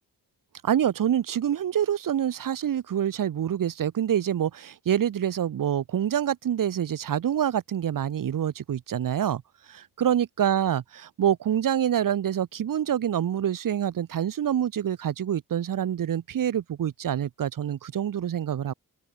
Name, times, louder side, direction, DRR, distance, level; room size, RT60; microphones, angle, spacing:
voice 1, 0.6-9.4 9.7-18.7, right 10 dB, 65° right, 0.8 m, -26 dB
wide cardioid pair, 175°, 36 cm